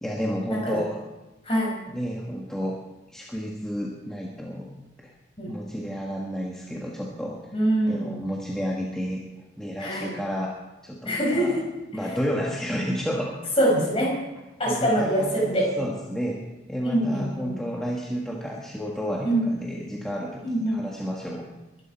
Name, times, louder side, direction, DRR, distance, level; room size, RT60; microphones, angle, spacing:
voice 1, 0.0-1.0 1.9-2.8 3.1-5.1 5.5-7.4 7.9-9.2 9.6-10.6 10.8-11.6 11.9-13.4 14.7-16.4 16.7-21.5, equal, 5° left, -3 dB, 1.6 m, -31 dB
voice 2, 1.5-1.8 5.4-5.5 7.5-8.2 9.8-10.2 11.1-11.6 13.6-14.2 14.6-15.8 16.8-17.5 19.2-19.4 20.4-20.8, right 1 dB, 30° left, -1 dB, 5.7 m, -24 dB
22.5 x 11.5 x 4.5 m, 1.0 s
head